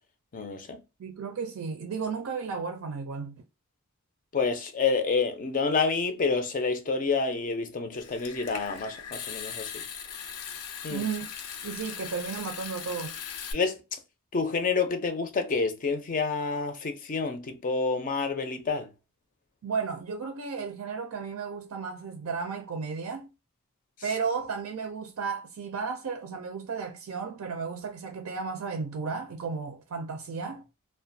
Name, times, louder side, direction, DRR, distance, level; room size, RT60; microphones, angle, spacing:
voice 1, 0.3-0.8 4.3-9.8 10.8-11.1 13.5-13.8 14.3-18.9, left 4 dB, 35° left, 0.5 m, -28 dB
voice 2, 1.0-3.4 10.9-11.3 11.6-13.1 19.6-23.3 24.0-30.6, right 5 dB, 65° right, 0.4 m, -34 dB
Water tap faucet / Sink (filling or washing) / Trickle dribble, 8.0-13.5, left 8 dB, 85° left, 0.5 m, -39 dB
2.4 x 2.1 x 2.5 m
head